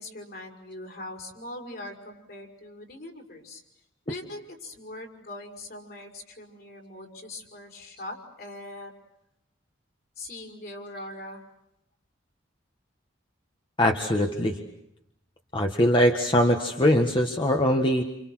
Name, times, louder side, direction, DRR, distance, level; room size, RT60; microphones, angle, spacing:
voice 1, 0.0-3.6 4.1-8.9 10.2-11.4, left 1 dB, 55° left, 1 dB, 5.8 m, -41 dB
voice 2, 13.8-14.6 15.5-18.0, equal, 25° left, 2 dB, 1.7 m, -22 dB
29.5 x 28.5 x 6.4 m, 0.82 s
head